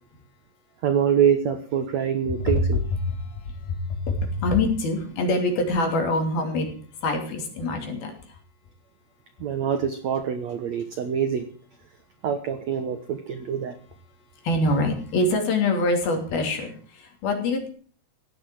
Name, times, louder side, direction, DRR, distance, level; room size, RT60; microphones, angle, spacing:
voice 1, 0.8-2.8 9.4-11.5 12.2-13.8, right 8 dB, 70° right, 9 dB, 1.6 m, -25 dB
voice 2, 2.9-6.7 7.0-8.4 14.4-17.7, left 2 dB, 60° left, 4 dB, 5.0 m, -25 dB
16.0 x 10.0 x 7.7 m, 0.43 s
omnidirectional pair, 4.9 m